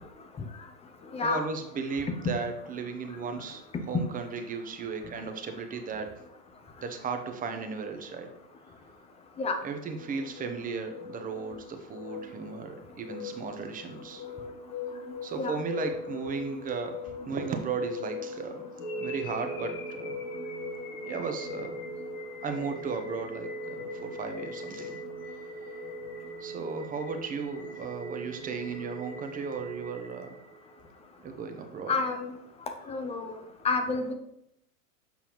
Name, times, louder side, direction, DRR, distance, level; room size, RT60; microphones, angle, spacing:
voice 1, 1.2-6.1 6.8-8.3 9.6-14.2 15.2-18.6 19.0-20.2 21.0-21.8 22.4-25.0 26.4-30.3 31.2-31.9, right 5 dB, 20° right, 6 dB, 0.8 m, -35 dB
sound 1, 9.9-26.4, left 6 dB, 35° left, 1.6 m, -42 dB
sound 2, 18.8-30.8, right 3 dB, 55° left, 2.7 m, -41 dB
voice 2, 31.9-32.3 32.9-33.4 33.6-34.1, left 4 dB, 15° left, 6 dB, 0.6 m, -29 dB
7.2 x 5.6 x 3.0 m, 0.79 s
hypercardioid pair, 110°, 46 cm